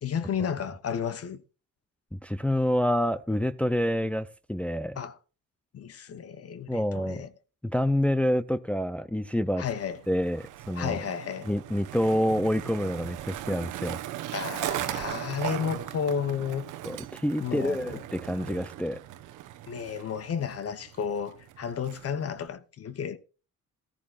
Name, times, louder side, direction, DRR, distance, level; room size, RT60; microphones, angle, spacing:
voice 1, 0.0-1.4 5.0-5.2 5.7-7.3 9.6-10.0 10.8-11.5 14.3-16.7 17.4-18.0 19.7-23.2, left 7 dB, 50° left, 1.0 m, -32 dB
voice 2, 2.1-5.0 6.7-7.2 7.6-9.6 10.1-11.0 11.4-14.0 16.8-19.0, equal, 5° left, 0.5 m, -27 dB
Skateboard, 9.8-22.5, right 13 dB, 90° right, 1.0 m, -38 dB
14.0 x 14.0 x 2.4 m
cardioid pair, 90°, 30 cm